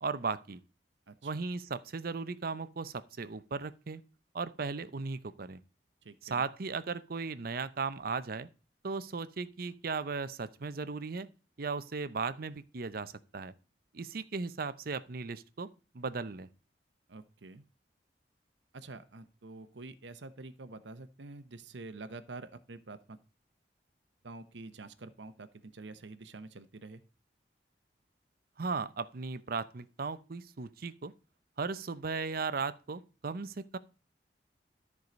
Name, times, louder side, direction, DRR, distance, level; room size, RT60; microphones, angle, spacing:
voice 1, 0.0-0.6 1.2-4.0 4.3-5.6 6.3-8.5 8.8-11.3 11.6-13.5 13.9-15.7 15.9-16.5 28.6-31.1 31.6-33.8, right 4 dB, 55° right, 0.7 m, -36 dB
voice 2, 1.1-1.4 6.0-6.4 17.1-17.6 18.7-23.2 24.2-27.0, right 3 dB, 90° right, 0.9 m, -47 dB
13.5 x 4.8 x 5.2 m
head